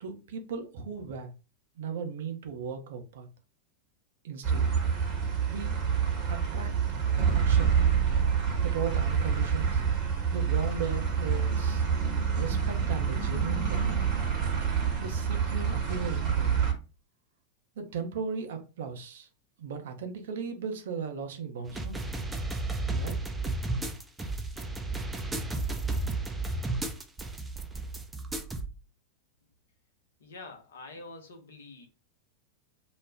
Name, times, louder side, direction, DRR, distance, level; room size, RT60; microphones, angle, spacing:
voice 1, 0.0-1.3 1.8-3.3 4.2-4.7 5.5-5.7 6.3-7.8 8.6-9.8 10.3-11.8 12.3-14.1 15.0-16.6 17.8-19.3 19.6-22.0 22.9-23.2, right 6 dB, 60° right, 0.6 m, -37 dB
sound 1, 4.4-16.7, right 7 dB, 35° right, 0.9 m, -27 dB
sound 2, 21.6-28.7, right 2 dB, 10° right, 0.4 m, -33 dB
voice 2, 30.2-31.9, left 3 dB, 65° left, 0.7 m, -46 dB
2.3 x 2.1 x 3.3 m
figure-of-eight pair, 90°, 0 cm